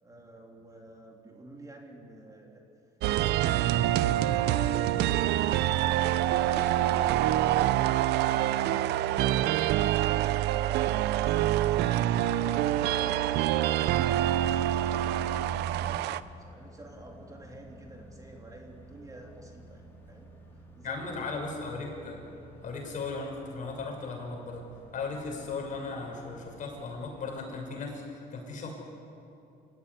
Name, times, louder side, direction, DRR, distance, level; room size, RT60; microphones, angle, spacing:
voice 1, 0.0-2.6 15.1-21.6, right 1 dB, 20° right, 0 dB, 3.4 m, -50 dB
sound 1, 3.0-16.2, right 13 dB, 80° right, 0.7 m, -26 dB
sound 2, 8.5-27.6, equal, 15° left, 5.1 m, -52 dB
voice 2, 20.8-22.3 22.6-24.6 24.9-28.7, left 4 dB, 50° left, 1 dB, 6.8 m, -37 dB
26.5 x 14.5 x 9.9 m, 2.8 s
cardioid pair, 110°, 17 cm